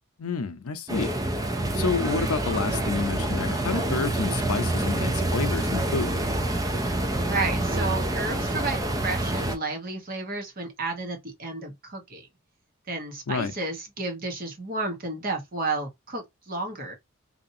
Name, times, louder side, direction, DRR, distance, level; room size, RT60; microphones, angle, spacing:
voice 1, 0.2-1.1 1.7-6.1 13.3-13.5, left 4 dB, 80° left, 0.6 m, -29 dB
sound 1, 0.9-9.6, right 1 dB, 15° right, 0.4 m, -27 dB
voice 2, 7.3-12.3 12.9-17.0, right 3 dB, 40° right, 1.0 m, -32 dB
2.8 x 2.5 x 2.7 m
head